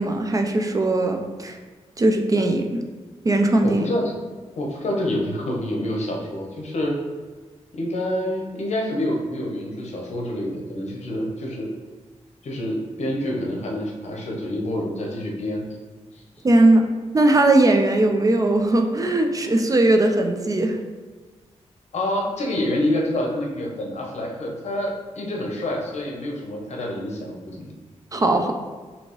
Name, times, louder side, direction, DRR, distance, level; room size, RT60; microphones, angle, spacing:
voice 1, 0.0-1.6 2.0-2.8 3.2-3.9 16.4-16.8 17.1-20.8 28.1-28.5, right 2 dB, 30° right, 4 dB, 0.4 m, -19 dB
voice 2, 3.6-4.1 4.6-7.0 7.7-11.7 12.4-15.6 16.1-16.2 21.9-27.7, left 1 dB, 70° left, -1 dB, 0.9 m, -27 dB
5.2 x 2.8 x 3.1 m, 1.4 s
wide cardioid pair, 110°, 12 cm